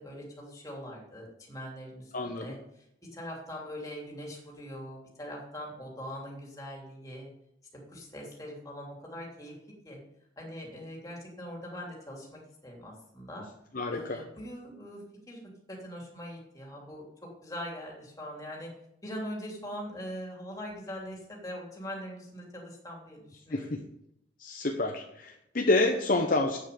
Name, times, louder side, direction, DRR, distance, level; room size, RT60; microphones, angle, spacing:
voice 1, 0.0-2.8 3.1-7.3 7.9-9.6 9.8-10.0 10.4-13.4 13.9-15.4 15.7-18.7 19.0-23.8, equal, 20° left, -2 dB, 3.0 m, -42 dB
voice 2, 2.1-2.5 13.7-14.2 23.5-23.8 24.4-26.6, left 2 dB, 50° left, 2 dB, 0.9 m, -28 dB
8.4 x 7.6 x 6.9 m, 0.79 s
head